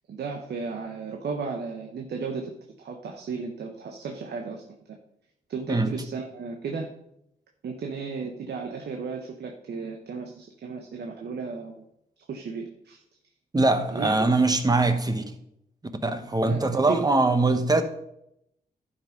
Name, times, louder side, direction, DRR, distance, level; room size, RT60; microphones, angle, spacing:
voice 1, 0.1-2.5 2.8-4.6 5.5-6.9 7.6-11.8 12.3-13.0 13.9-14.1 16.4-17.1, right 5 dB, 85° right, 1.1 m, -34 dB
voice 2, 13.5-15.2 16.0-17.8, right 2 dB, 25° right, 1.2 m, -22 dB
11.5 x 5.5 x 5.3 m
cardioid pair, 85°, 17 cm